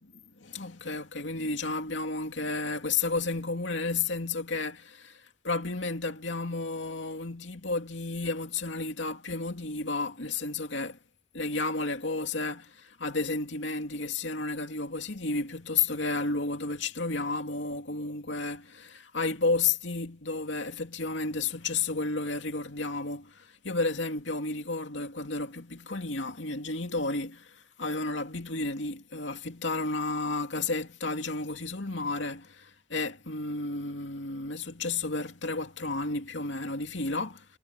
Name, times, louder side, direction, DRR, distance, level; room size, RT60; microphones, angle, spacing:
voice 1, 0.4-11.0 11.3-37.5, left 3 dB, 80° left, 2.5 m, -32 dB
head